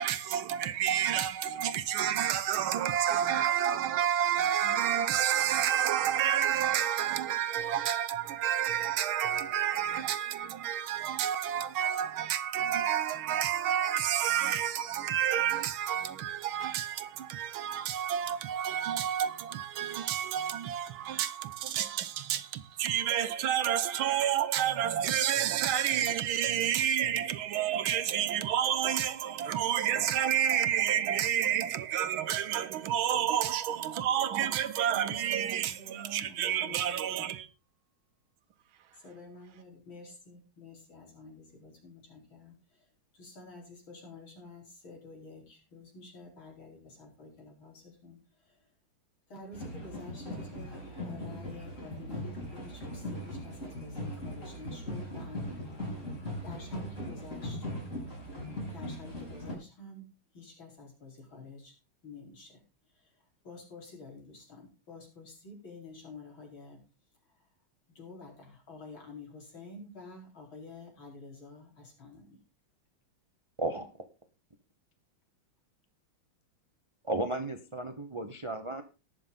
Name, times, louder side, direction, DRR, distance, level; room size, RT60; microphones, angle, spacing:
voice 1, 0.0-37.5, right 10 dB, 75° right, 1.7 m, -29 dB
voice 2, 34.9-37.3 38.9-48.7 49.3-56.1 56.4-57.6 58.6-60.1 60.3-61.7 62.0-66.8 67.3-67.5 67.9-72.4, left 2 dB, 70° left, 5.4 m, -49 dB
sound 1, 49.5-59.5, left 1 dB, 35° left, 4.3 m, -39 dB
voice 3, 73.6-73.9 77.0-78.8, right 2 dB, 25° right, 0.7 m, -34 dB
19.0 x 6.7 x 4.0 m
omnidirectional pair, 2.3 m